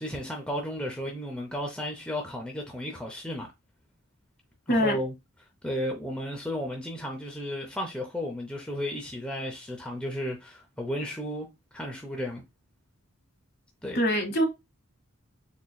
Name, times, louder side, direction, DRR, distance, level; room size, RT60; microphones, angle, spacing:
voice 1, 0.0-3.5 4.7-5.1 5.6-12.4 13.8-14.0, equal, 5° left, 0.5 m, -34 dB
voice 2, 13.9-14.4, equal, 50° left, 1.2 m, -23 dB
3.9 x 3.0 x 2.3 m
head